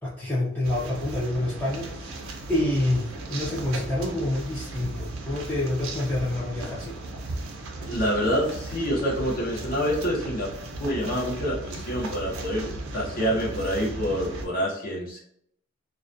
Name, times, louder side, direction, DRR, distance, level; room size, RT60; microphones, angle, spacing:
voice 1, 0.0-7.0, left 1 dB, 10° left, -7 dB, 0.4 m, -28 dB
sound 1, 0.6-14.5, right 2 dB, 85° right, 0.5 m, -36 dB
voice 2, 7.8-10.5 10.8-12.7 12.9-15.2, equal, 45° left, -3 dB, 0.7 m, -27 dB
2.3 x 2.1 x 2.5 m, 0.70 s
head